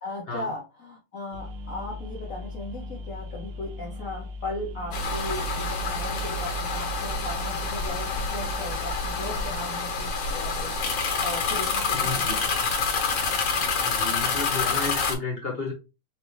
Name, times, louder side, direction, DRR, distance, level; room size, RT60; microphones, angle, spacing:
voice 1, 0.0-12.5, left 2 dB, 60° left, -1 dB, 0.9 m, -37 dB
sound 1, 1.3-9.6, left 2 dB, 80° right, 1.7 m, -38 dB
sound 2, 4.9-15.1, left 4 dB, 75° left, 1.9 m, -27 dB
voice 2, 11.9-12.4 13.8-15.7, left 3 dB, 35° left, -1 dB, 1.1 m, -32 dB
4.7 x 2.6 x 3.0 m, 0.28 s
omnidirectional pair, 2.4 m